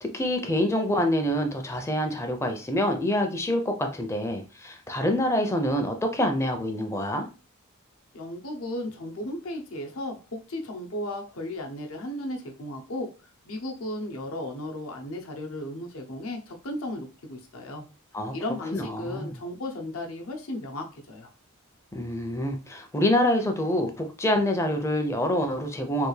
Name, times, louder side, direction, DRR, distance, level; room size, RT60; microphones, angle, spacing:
voice 1, 0.0-7.3 18.1-18.3 18.7-19.3 21.9-26.1, left 1 dB, 15° left, 0.4 m, -26 dB
voice 2, 8.1-13.1 13.5-17.8 18.3-21.3, left 1 dB, 75° left, 0.8 m, -35 dB
3.4 x 2.4 x 3.2 m
head